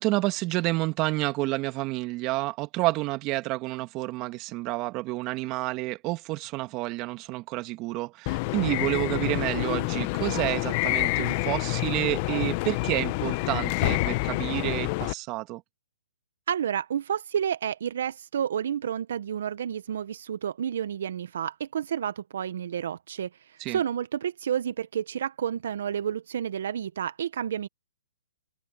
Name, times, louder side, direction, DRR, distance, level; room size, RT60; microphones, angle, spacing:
voice 1, 0.0-15.6 23.6-23.8, right 21 dB, 30° right, 2.1 m, -29 dB
sound 1, 8.3-15.1, left 24 dB, 35° left, 1.0 m, -28 dB
voice 2, 16.5-27.7, right 9 dB, 60° right, 1.1 m, -30 dB
hypercardioid pair, 145°, 0 cm